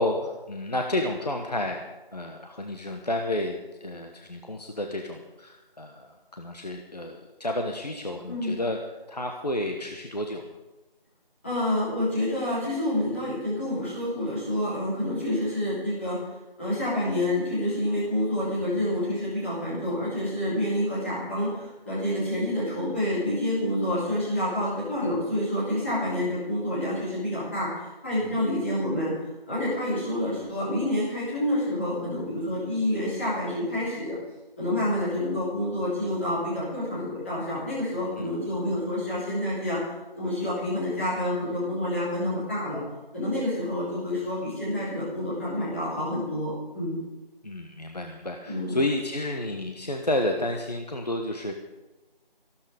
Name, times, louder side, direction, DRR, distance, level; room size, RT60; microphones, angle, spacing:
voice 1, 0.0-1.8 2.1-8.8 9.1-10.4 28.2-28.4 38.2-38.3 47.4-51.5, left 1 dB, 45° left, 3 dB, 1.3 m, -31 dB
voice 2, 11.4-16.2 16.6-29.1 29.5-34.2 34.6-39.8 40.2-42.8 43.1-47.0 48.5-48.8, left 1 dB, 15° left, -10 dB, 3.3 m, -28 dB
15.0 x 12.5 x 5.2 m, 1.1 s
figure-of-eight pair, 180°, 29 cm